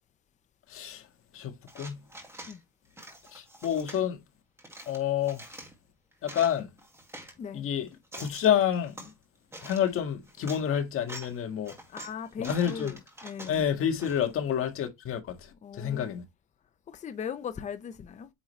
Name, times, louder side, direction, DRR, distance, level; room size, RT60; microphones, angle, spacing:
voice 1, 0.7-1.1 1.3-2.1 3.3-4.2 4.9-5.4 6.2-6.7 7.5-7.9 8.2-9.1 9.6-11.8 12.4-12.9 13.5-16.2, left 9 dB, 40° left, 1.8 m, -29 dB
sound 1, 1.7-2.6 3.0-4.0 4.6-5.7 6.1-7.3 7.9-9.1 9.5-9.9 10.3-10.6 11.0-11.4 11.6-14.3, right 1 dB, 10° right, 2.1 m, -46 dB
voice 2, 7.4-7.7 11.9-13.7 15.6-16.2 16.9-18.3, left 7 dB, 20° left, 0.7 m, -39 dB
8.8 x 3.9 x 3.2 m
cardioid pair, 140°, 32 cm